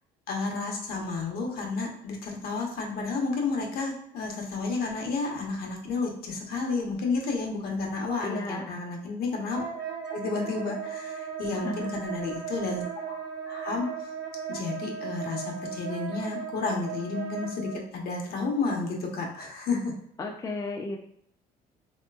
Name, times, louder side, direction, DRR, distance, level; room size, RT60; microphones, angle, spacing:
voice 1, 0.3-9.6 10.1-13.2 13.5-14.1 14.5-19.9, left 3 dB, 65° left, 1 dB, 0.9 m, -31 dB
voice 2, 8.2-8.7 11.5-12.1 20.2-21.0, left 2 dB, 20° left, 2 dB, 0.4 m, -34 dB
Wind instrument woodwind instrument, 9.6-17.8, right 7 dB, 75° right, 1.0 m, -37 dB
3.2 x 2.9 x 2.3 m, 0.72 s
cardioid pair, 110°, 17 cm